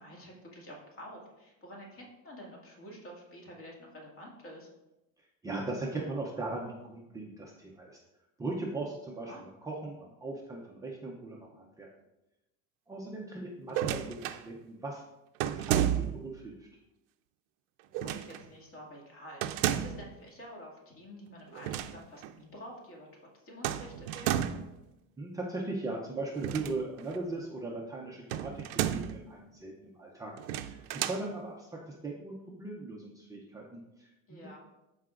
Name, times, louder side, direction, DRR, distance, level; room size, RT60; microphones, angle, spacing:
voice 1, 0.0-4.7 9.2-9.4 13.3-13.4 17.9-24.5 31.7-31.8 34.3-34.6, equal, 40° left, -2 dB, 2.1 m, -49 dB
voice 2, 5.2-8.0 8.4-11.9 12.9-15.0 15.4-16.7 25.2-34.5, right 2 dB, 10° right, -2 dB, 0.5 m, -39 dB
sound 1, 13.7-14.4 15.4-16.3 17.9-18.4 19.4-20.1 21.5-22.0 22.2-22.3 23.6-24.7 26.3-27.2 28.3-29.2 30.4-31.2, right 11 dB, 90° right, 0.6 m, -32 dB
13.5 x 4.8 x 2.4 m, 0.96 s
cardioid pair, 165°, 34 cm